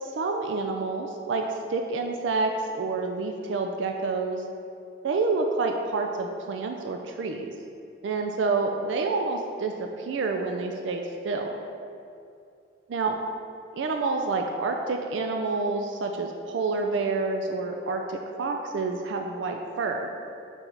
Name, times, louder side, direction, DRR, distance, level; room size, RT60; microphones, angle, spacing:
voice 1, 0.0-4.4 5.0-7.5 8.0-11.6 12.9-13.2 13.7-20.1, right 3 dB, 85° right, 3 dB, 0.4 m, -28 dB
6.0 x 4.3 x 3.9 m, 2.5 s
head